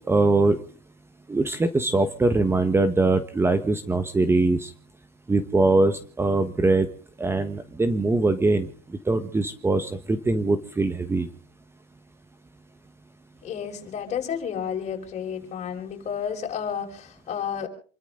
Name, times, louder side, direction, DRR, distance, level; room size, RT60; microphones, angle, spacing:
voice 1, 0.1-0.6 1.3-4.7 5.3-6.9 7.2-8.7 9.1-11.3, right 3 dB, 10° right, 11 dB, 1.4 m, -22 dB
voice 2, 13.4-17.7, left 8 dB, 35° left, 3 dB, 6.0 m, -31 dB
28.0 x 13.0 x 3.9 m, 0.42 s
supercardioid pair, 110°, 20 cm